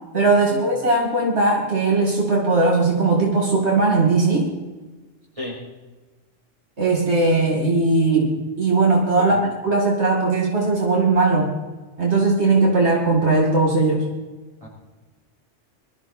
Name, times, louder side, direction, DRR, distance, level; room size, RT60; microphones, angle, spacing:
voice 1, 0.1-4.5 6.8-9.4 9.6-11.5 12.0-14.0, right 3 dB, 70° right, -1 dB, 2.6 m, -19 dB
voice 2, 9.2-9.5 14.6-14.7, left 1 dB, 30° right, -3 dB, 5.0 m, -33 dB
21.5 x 13.5 x 4.2 m, 1.2 s
omnidirectional pair, 1.2 m